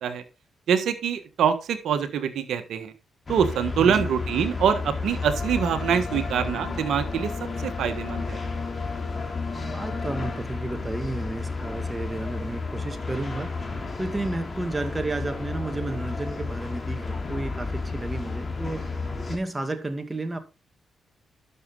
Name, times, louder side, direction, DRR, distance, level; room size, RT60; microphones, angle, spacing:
voice 1, 0.7-2.9 3.3-7.3 7.6-8.4, right 7 dB, 75° right, 1.5 m, -24 dB
sound 1, 3.3-19.4, left 3 dB, 40° left, 2.9 m, -32 dB
voice 2, 3.8-4.1 9.5-13.5 14.0-18.9 19.3-20.4, right 2 dB, 20° right, 2.2 m, -32 dB
sound 2, 5.2-10.4, left 5 dB, 55° left, 2.5 m, -37 dB
12.0 x 6.7 x 3.9 m
supercardioid pair, 50°, 0 cm